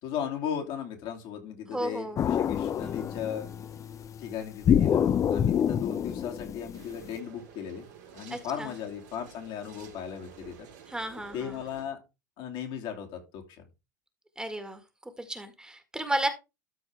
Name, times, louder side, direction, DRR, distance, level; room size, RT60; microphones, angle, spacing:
voice 1, 0.0-3.5 4.2-7.9 8.1-10.7 11.3-12.0 12.4-13.6, left 8 dB, 55° left, 2 dB, 2.8 m, -37 dB
voice 2, 1.7-2.2 8.3-8.7 10.9-11.6 14.4-14.8 15.2-16.3, right 1 dB, 10° right, 8 dB, 1.9 m, -33 dB
sound 1, 2.2-3.6 4.6-7.1, left 8 dB, 35° left, 0.6 m, -26 dB
sound 2, 2.8-9.3 9.8-10.3, left 7 dB, 15° left, 1.8 m, -48 dB
sound 3, 6.7-11.9, right 9 dB, 70° right, 3.8 m, -51 dB
13.0 x 4.6 x 3.5 m, 0.25 s
hypercardioid pair, 80°, 10 cm